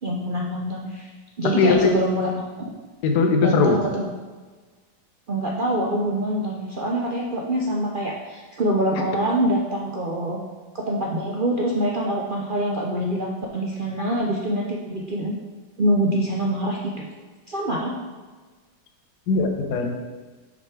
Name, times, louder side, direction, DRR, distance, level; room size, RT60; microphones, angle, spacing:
voice 1, 0.0-1.1 1.4-2.3 3.4-4.1 5.3-10.4 10.7-15.3 15.8-17.1 17.5-17.9, right 1 dB, 75° right, -2 dB, 0.4 m, -25 dB
voice 2, 1.6-1.9 3.0-3.8 19.3-19.9, left 4 dB, 65° left, 3 dB, 1.3 m, -19 dB
6.0 x 5.3 x 4.8 m, 1.3 s
omnidirectional pair, 2.0 m